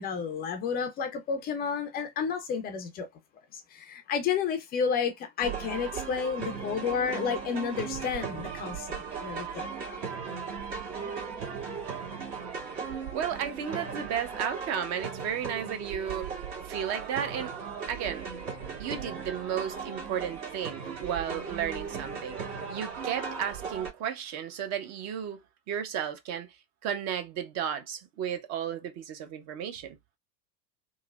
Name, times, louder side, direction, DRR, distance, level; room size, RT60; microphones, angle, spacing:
voice 1, 0.0-3.1 3.5-10.0, left 6 dB, 20° left, 0.4 m, -31 dB
sound 1, 5.4-23.9, right 6 dB, 60° right, 1.6 m, -37 dB
voice 2, 12.9-17.5 17.9-18.2 18.8-25.4 25.7-26.6 26.8-30.0, right 8 dB, 35° right, 0.6 m, -34 dB
3.1 x 2.0 x 2.2 m
hypercardioid pair, 90°, 50 cm